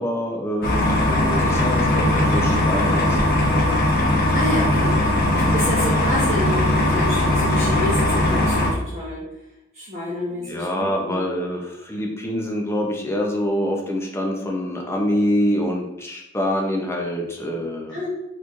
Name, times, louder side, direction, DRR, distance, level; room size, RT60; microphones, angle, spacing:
voice 1, 0.0-3.4 5.2-5.6 10.4-18.0, equal, 15° left, 1 dB, 0.5 m, -25 dB
sound 1, 0.6-8.7, left 1 dB, 50° left, 0.7 m, -19 dB
voice 2, 4.3-5.0 5.5-9.2 9.7-11.2 17.9-18.1, left 1 dB, 35° right, -10 dB, 0.9 m, -28 dB
3.8 x 3.0 x 2.5 m, 0.87 s
head